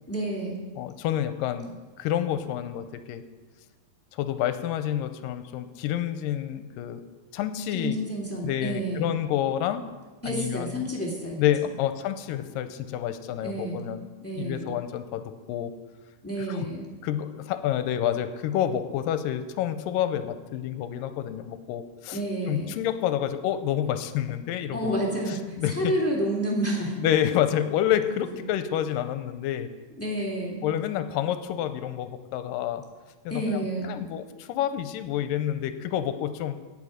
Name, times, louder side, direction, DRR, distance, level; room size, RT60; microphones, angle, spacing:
voice 1, 0.1-0.6 7.7-9.1 10.2-11.7 13.4-13.8 14.2-14.7 16.2-16.8 22.1-22.7 24.7-27.0 30.0-30.6 33.3-33.9, right 1 dB, 5° left, -4 dB, 1.4 m, -30 dB
voice 2, 0.8-3.3 4.1-7.0 7.3-8.0 8.4-9.8 10.3-10.9 11.4-14.1 14.4-15.7 16.5-16.7 17.0-22.2 22.5-25.0 25.6-25.9 27.0-29.7 30.6-32.8 33.3-36.6, left 11 dB, 90° left, 10 dB, 2.3 m, -28 dB
17.0 x 6.8 x 5.0 m, 1.3 s
omnidirectional pair, 3.9 m